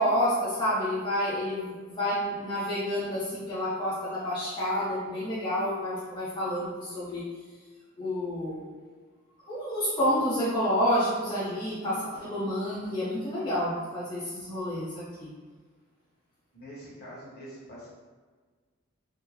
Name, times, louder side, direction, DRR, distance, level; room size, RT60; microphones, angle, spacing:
voice 1, 0.0-7.2 8.0-8.6 9.5-15.3, equal, 20° left, -10 dB, 0.6 m, -29 dB
voice 2, 16.5-17.9, equal, 50° left, -6 dB, 1.1 m, -44 dB
3.7 x 2.0 x 2.9 m, 1.5 s
head